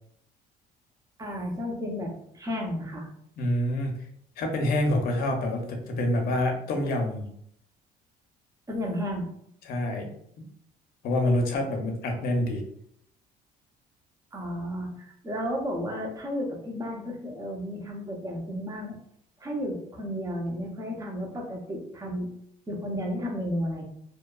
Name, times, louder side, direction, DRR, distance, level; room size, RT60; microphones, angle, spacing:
voice 1, 1.2-3.1 8.7-9.3 14.3-19.0 19.4-22.3 22.7-23.9, equal, 20° right, 0 dB, 0.7 m, -33 dB
voice 2, 3.4-4.0 4.4-7.3 9.6-10.1 10.4-10.5 11.0-12.6, left 1 dB, 65° left, 3 dB, 0.6 m, -27 dB
2.7 x 2.2 x 2.3 m, 0.69 s
cardioid pair, 110°, 17 cm